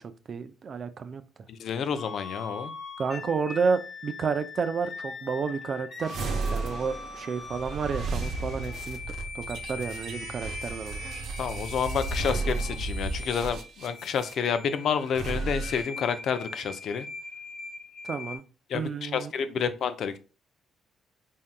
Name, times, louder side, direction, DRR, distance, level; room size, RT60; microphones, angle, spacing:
voice 1, 0.3-1.2 3.0-6.3 6.5-9.0 9.3-11.0 18.0-18.4 18.7-19.3, right 5 dB, 50° right, 0.4 m, -31 dB
voice 2, 1.5-2.7 11.4-17.1 18.7-20.2, left 7 dB, 65° left, 0.5 m, -29 dB
sound 1, 2.0-18.4, left 4 dB, 45° left, 1.1 m, -41 dB
sound 2, 6.0-14.3 15.0-15.8, right 3 dB, 75° right, 0.8 m, -34 dB
4.2 x 3.6 x 2.2 m
cardioid pair, 90°, 0 cm